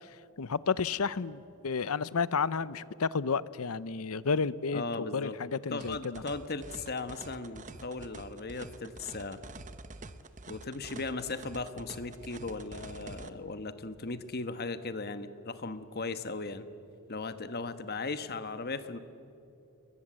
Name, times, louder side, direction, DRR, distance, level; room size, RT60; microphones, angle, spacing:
voice 1, 0.4-6.2, left 5 dB, 75° left, 18 dB, 0.7 m, -31 dB
voice 2, 4.7-5.4 5.7-9.4 10.5-16.7 17.1-19.0, left 3 dB, 45° left, 11 dB, 1.2 m, -37 dB
sound 1, 5.8-13.3, right 3 dB, 35° right, 0.9 m, -47 dB
29.0 x 22.0 x 7.6 m, 2.8 s
head